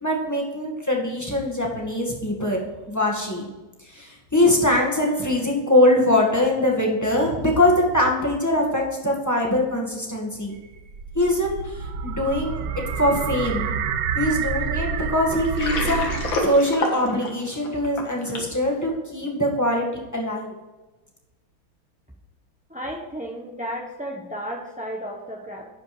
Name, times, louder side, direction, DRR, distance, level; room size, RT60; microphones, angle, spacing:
voice 1, 0.0-3.5 3.8-10.5 11.1-12.6 13.0-13.7 14.1-19.9 20.1-20.5, left 1 dB, 10° left, -2 dB, 1.7 m, -22 dB
sound 1, 10.5-16.7, right 7 dB, 65° right, 1.3 m, -28 dB
Water, 15.4-18.6, left 3 dB, 70° left, 2.3 m, -27 dB
voice 2, 22.7-25.7, equal, 10° right, -1 dB, 0.5 m, -33 dB
11.5 x 5.2 x 5.0 m, 1.2 s
omnidirectional pair, 2.2 m